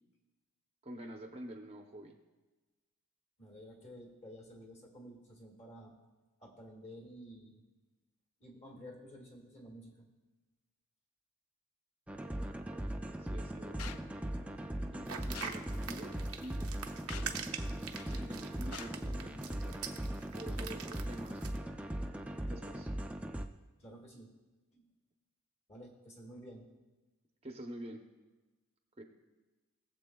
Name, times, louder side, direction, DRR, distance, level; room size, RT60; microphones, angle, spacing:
voice 1, 0.8-2.2 13.2-13.9 14.9-16.7 17.2-17.5 18.1-19.8 20.3-21.4 22.5-22.9 27.4-28.0 29.0-29.1, right 1 dB, 25° right, 2 dB, 0.7 m, -47 dB
voice 2, 3.4-6.0 6.4-7.6 8.4-10.0 23.8-24.3 24.7-24.8 25.7-26.7, equal, 30° left, 1 dB, 1.8 m, -52 dB
sound 1, 12.1-23.5, right 1 dB, 5° right, 0.3 m, -39 dB
sound 2, 13.8-14.0 15.3-15.6 16.4-16.5 17.1-17.4 18.0-18.3 18.7-18.9, left 9 dB, 80° left, 0.4 m, -47 dB
sound 3, 15.1-21.6, right 7 dB, 85° right, 0.8 m, -44 dB
20.5 x 7.5 x 2.3 m, 1.2 s
head